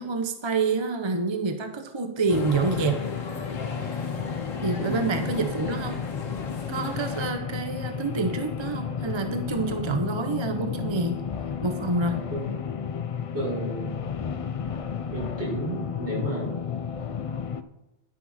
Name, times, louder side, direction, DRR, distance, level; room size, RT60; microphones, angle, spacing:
voice 1, 0.0-3.0 4.6-5.9 6.7-11.2 11.6-12.2, right 3 dB, 25° right, 6 dB, 0.7 m, -27 dB
sound 1, 2.3-7.3, left 3 dB, 85° left, 1.7 m, -38 dB
sound 2, 2.3-17.6, left 7 dB, 55° left, 0.3 m, -32 dB
voice 2, 4.8-5.1 12.3-12.5 13.3-14.0 15.1-16.5, right 2 dB, 60° right, -6 dB, 5.1 m, -32 dB
11.0 x 10.0 x 4.2 m, 0.96 s
omnidirectional pair, 1.3 m